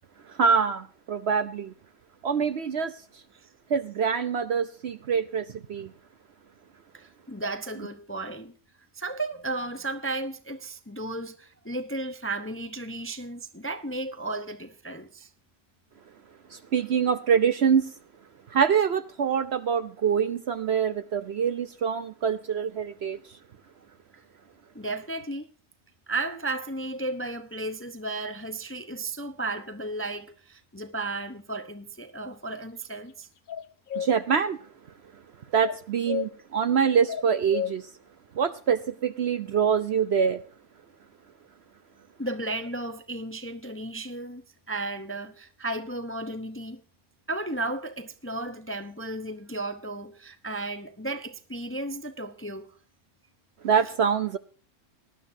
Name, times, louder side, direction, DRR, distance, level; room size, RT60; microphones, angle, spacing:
voice 1, 0.3-1.7 2.2-2.9 3.7-5.9 16.5-17.8 18.5-23.2 34.0-34.6 35.5-37.9 38.3-40.4 53.6-54.4, right 7 dB, 55° right, 0.8 m, -25 dB
voice 2, 6.9-8.5 8.9-15.3 24.7-25.5 26.1-33.3 42.2-44.4 44.7-46.8 47.3-52.7, right 2 dB, 15° left, 0.6 m, -34 dB
sound 1, 33.5-34.1 35.6-36.3 37.1-37.7, left 9 dB, 55° left, 0.5 m, -31 dB
19.0 x 11.5 x 2.7 m
omnidirectional pair, 1.5 m